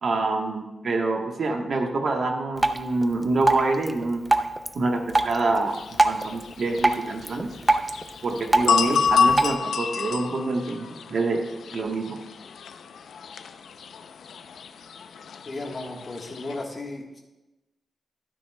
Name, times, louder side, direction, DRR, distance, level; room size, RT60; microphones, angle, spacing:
voice 1, 0.0-4.2 4.7-7.5 8.2-11.4 11.7-12.2, right 3 dB, 55° right, 3 dB, 1.2 m, -26 dB
Drip, 2.6-9.6, right 2 dB, 15° right, 0.5 m, -26 dB
sound 1, 5.7-16.6, left 6 dB, 85° left, 0.5 m, -29 dB
voice 2, 15.5-17.2, left 2 dB, 30° left, 0 dB, 1.3 m, -35 dB
12.5 x 9.4 x 2.2 m, 1.0 s
wide cardioid pair, 145°, 0 cm